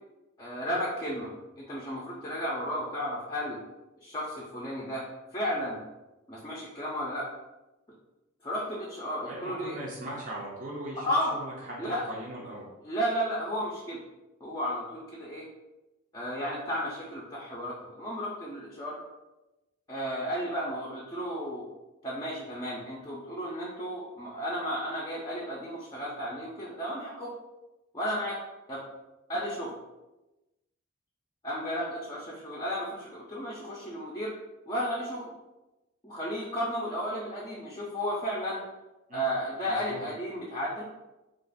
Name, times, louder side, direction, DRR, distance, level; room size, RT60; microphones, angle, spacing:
voice 1, 0.4-3.6 4.0-5.0 5.3-5.8 6.3-7.2 8.4-9.8 11.0-11.4 11.8-12.0 12.8-14.0 14.4-15.4 16.1-19.0 19.9-21.7 22.0-27.3 27.9-28.4 28.7-28.8 29.3-29.7 31.4-34.3 34.7-35.3 36.0-38.6 39.1-40.8, equal, 20° left, -5 dB, 0.5 m, -33 dB
voice 2, 9.3-11.1 11.3-12.7 39.1-39.3 39.7-40.1, right 1 dB, 40° right, -5 dB, 0.5 m, -39 dB
2.5 x 2.4 x 3.8 m, 1.0 s
head